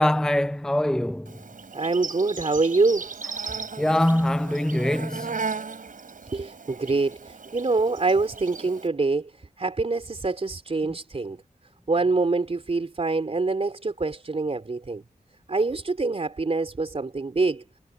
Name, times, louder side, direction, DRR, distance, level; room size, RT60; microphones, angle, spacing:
voice 1, 0.0-1.4 3.8-5.4, left 1 dB, 5° left, 0.4 m, -23 dB
Insect, 1.3-8.9, right 4 dB, 65° right, 5.4 m, -36 dB
voice 2, 1.7-3.1 6.3-9.3 9.6-11.4 11.9-15.0 15.5-17.6, right 3 dB, 45° right, 3.3 m, -25 dB
wide cardioid pair, 75°, 15 cm